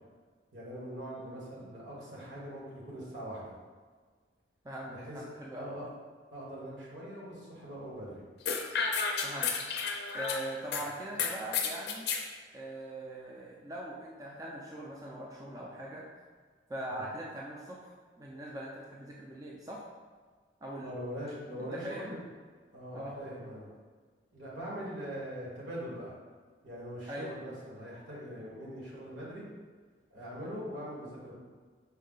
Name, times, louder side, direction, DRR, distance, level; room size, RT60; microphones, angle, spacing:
voice 1, 0.5-3.5 4.9-5.2 5.6-5.9 6.3-8.2 11.1-11.2 16.9-17.0 20.8-22.2 22.7-23.7 24.3-26.1 26.6-29.5 30.1-31.3, equal, 80° right, -6 dB, 1.5 m, -42 dB
voice 2, 1.2-1.7 4.6-5.7 9.2-9.5 10.1-12.1 12.5-16.0 16.7-19.8 20.6-20.9 21.6-22.2 22.9-23.2 27.1-27.4, right 1 dB, 20° right, -3 dB, 0.4 m, -41 dB
sound 1, 8.4-10.8 11.2-12.2, left 5 dB, 60° left, 0.4 m, -32 dB
5.4 x 2.1 x 3.8 m, 1.5 s
head